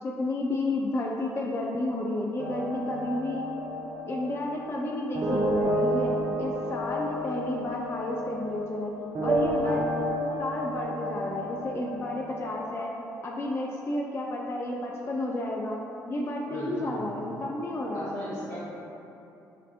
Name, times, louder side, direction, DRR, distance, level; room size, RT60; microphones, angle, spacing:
voice 1, 0.0-3.4 4.1-6.1 6.4-8.9 9.2-9.8 10.4-12.9 13.2-15.8 16.1-18.1, left 1 dB, 25° left, -1 dB, 0.4 m, -31 dB
sound 1, 2.4-12.5, equal, 50° right, 0.8 m, -31 dB
voice 2, 16.5-17.0 17.9-18.6, left 1 dB, 75° left, -11 dB, 1.4 m, -37 dB
6.4 x 2.4 x 2.3 m, 2.9 s
figure-of-eight pair, 45°, 10 cm